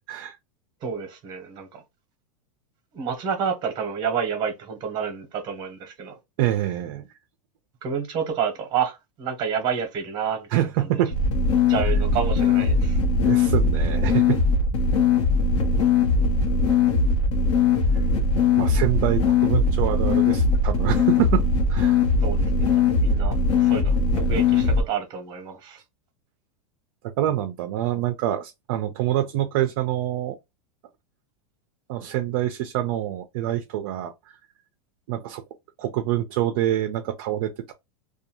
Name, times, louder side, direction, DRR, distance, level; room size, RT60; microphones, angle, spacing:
voice 1, 0.8-1.8 2.9-6.1 7.8-10.6 11.7-13.0 17.9-18.0 22.2-25.8, right 7 dB, 25° right, 0.8 m, -29 dB
voice 2, 6.4-7.1 10.5-11.1 11.8-11.9 13.2-14.4 18.6-21.4 21.7-22.0 27.0-30.4 31.9-34.1 35.1-35.4 35.8-37.7, right 12 dB, 40° right, 0.4 m, -26 dB
sound 1, 11.1-24.8, left 4 dB, 60° left, 0.8 m, -20 dB
2.5 x 2.2 x 2.9 m
supercardioid pair, 170°, 17 cm